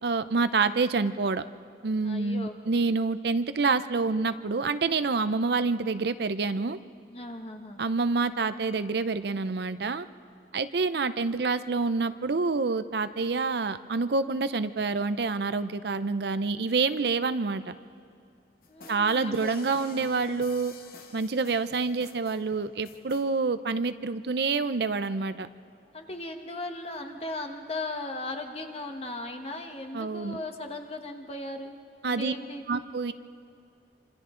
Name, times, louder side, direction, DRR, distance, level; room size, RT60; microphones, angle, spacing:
voice 1, 0.0-1.4 1.8-6.8 7.8-10.1 10.5-17.7 18.9-20.7 21.1-25.5 29.9-30.4 32.0-32.3 32.7-33.1, right 4 dB, 65° right, 12 dB, 0.5 m, -27 dB
voice 2, 2.0-2.6 7.1-7.8 18.7-19.6 25.9-31.8 32.0-32.7, left 2 dB, 35° left, 5 dB, 1.4 m, -37 dB
sound 1, 18.6-23.3, left 3 dB, 55° left, 1.3 m, -49 dB
27.0 x 26.5 x 3.8 m, 2.3 s
head